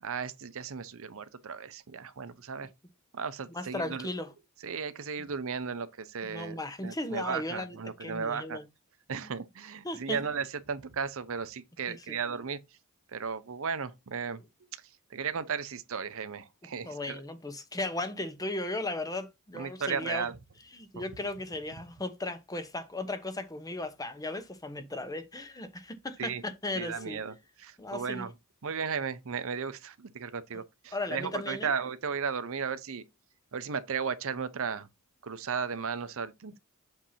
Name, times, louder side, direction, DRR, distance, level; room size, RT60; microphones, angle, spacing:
voice 1, 0.0-2.7 3.1-4.1 4.6-8.6 9.1-12.6 13.1-14.4 15.1-17.2 19.5-20.4 21.0-21.1 26.2-26.4 26.7-28.3 28.6-33.0 33.5-34.9 35.2-36.6, right 6 dB, 65° right, 0.7 m, -35 dB
voice 2, 3.5-4.3 6.2-8.6 9.8-10.2 11.9-12.2 16.9-20.3 20.7-27.2 27.8-28.2 30.9-31.7, left 2 dB, 15° left, 0.9 m, -36 dB
7.7 x 2.8 x 5.6 m
head